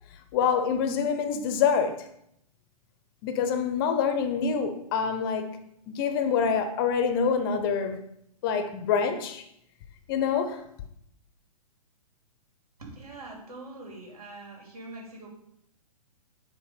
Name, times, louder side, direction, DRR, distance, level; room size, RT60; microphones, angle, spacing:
voice 1, 0.3-2.1 3.2-5.6 5.9-8.0 8.4-9.4 10.1-10.6, left 6 dB, 35° left, 0.8 m, -26 dB
voice 2, 12.8-15.3, right 2 dB, 75° right, 2.8 m, -43 dB
7.5 x 3.4 x 5.3 m
figure-of-eight pair, 115°, 20 cm